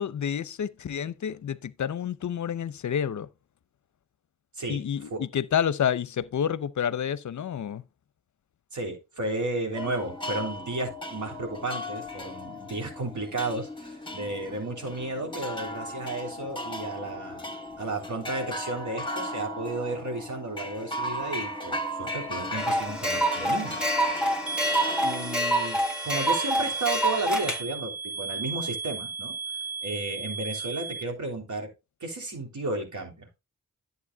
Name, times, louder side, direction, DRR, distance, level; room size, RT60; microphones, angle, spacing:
voice 1, 0.0-3.3 4.7-7.8, left 8 dB, 60° left, 0.7 m, -29 dB
voice 2, 8.7-17.5 17.8-24.1 25.0-29.3 29.8-31.7 32.0-33.3, right 2 dB, 60° right, 3.3 m, -33 dB
sound 1, 9.8-25.4, left 1 dB, 15° left, 1.9 m, -36 dB
sound 2, 22.6-27.6, right 1 dB, 5° right, 1.8 m, -26 dB
sound 3, 24.5-31.0, right 5 dB, 45° right, 1.0 m, -35 dB
11.0 x 7.9 x 2.3 m
cardioid pair, 50°, 34 cm